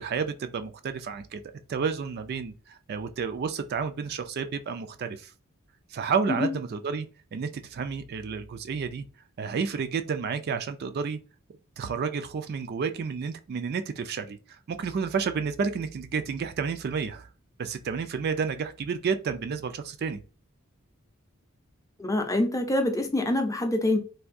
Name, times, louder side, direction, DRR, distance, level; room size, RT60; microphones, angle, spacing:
voice 1, 0.0-1.4 1.7-5.3 5.9-7.1 7.3-9.0 9.4-11.2 11.8-17.3 17.6-20.2, right 5 dB, 50° right, 0.3 m, -31 dB
voice 2, 22.0-24.0, left 1 dB, 15° left, 0.6 m, -25 dB
3.4 x 2.6 x 2.5 m
head